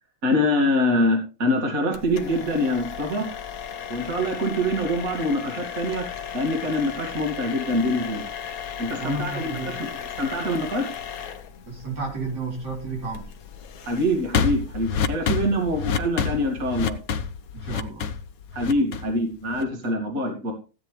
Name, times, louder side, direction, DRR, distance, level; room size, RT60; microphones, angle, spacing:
voice 1, 0.2-3.3 3.9-6.0 6.3-8.3 8.8-9.9 10.2-10.9 13.8-17.0 18.5-20.5, left 1 dB, 55° right, 1 dB, 2.7 m, -24 dB
sound 1, 1.9-19.9, left 7 dB, 60° left, 1.3 m, -32 dB
voice 2, 9.0-9.7 11.7-13.3 17.5-18.1, right 3 dB, 80° right, 0 dB, 3.8 m, -32 dB
16.0 x 9.1 x 3.2 m, 0.34 s
omnidirectional pair, 1.8 m